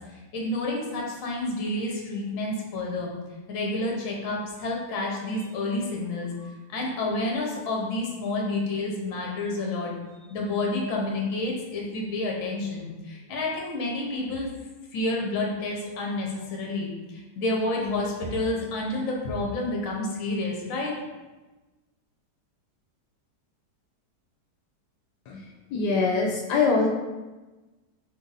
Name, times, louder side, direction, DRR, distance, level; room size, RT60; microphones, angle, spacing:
voice 1, 0.0-3.1 3.5-9.9 10.3-14.5 14.9-20.9, left 2 dB, 55° left, -2 dB, 1.2 m, -29 dB
voice 2, 25.7-26.9, left 4 dB, 80° left, -2 dB, 1.2 m, -23 dB
4.7 x 2.6 x 4.0 m, 1.2 s
omnidirectional pair, 1.8 m